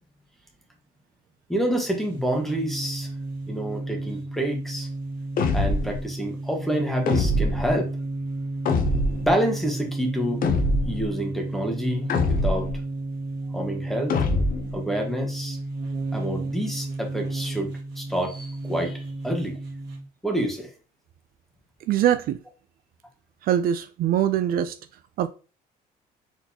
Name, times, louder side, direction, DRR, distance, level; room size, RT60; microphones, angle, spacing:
voice 1, 1.5-3.1 3.5-4.9 5.5-7.9 9.2-10.4 10.8-12.7 13.5-14.1 14.7-15.6 16.1-17.7 18.0-19.6 20.2-20.7, equal, ahead, 1.3 m, -27 dB
sound 1, 1.8-20.0, right 2 dB, 80° right, 1.5 m, -33 dB
sound 2, 5.4-6.0 7.1-7.7 8.7-9.3 10.4-11.1 12.1-12.8 14.1-14.8, left 2 dB, 55° left, 0.8 m, -23 dB
voice 2, 21.9-22.4 23.4-24.8 25.2-25.3, right 10 dB, 60° right, 0.4 m, -22 dB
4.3 x 4.0 x 2.8 m
cardioid pair, 110°, 17 cm